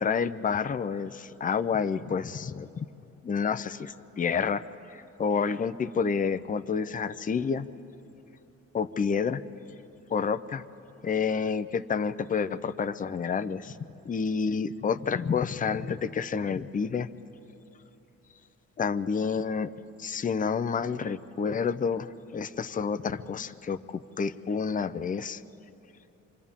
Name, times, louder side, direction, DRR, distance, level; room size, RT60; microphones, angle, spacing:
voice 1, 0.0-2.9 3.2-4.6 4.9-7.7 8.7-9.4 10.1-10.6 11.0-13.8 14.0-17.1 18.8-19.7 20.0-25.4, left 6 dB, 25° left, 10 dB, 0.6 m, -29 dB
27.5 x 25.5 x 3.7 m, 2.9 s
cardioid pair, 90°, 30 cm